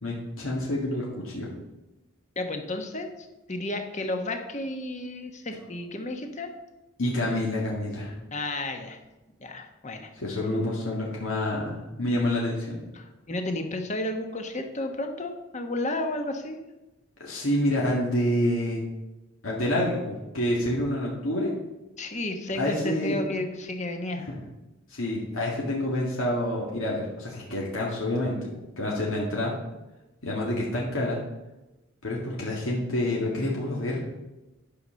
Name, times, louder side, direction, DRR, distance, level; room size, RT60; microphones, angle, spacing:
voice 1, 0.0-1.5 7.0-8.1 10.1-12.8 17.2-18.8 19.4-21.5 22.5-23.2 24.3-24.4 24.9-28.5 28.8-29.5 30.2-31.2 32.0-34.0, left 1 dB, 75° left, -4 dB, 2.0 m, -28 dB
voice 2, 2.4-6.5 8.3-9.0 9.4-10.1 12.9-16.6 22.0-24.2, left 2 dB, 35° left, 5 dB, 1.2 m, -32 dB
11.5 x 5.6 x 6.4 m, 1.0 s
head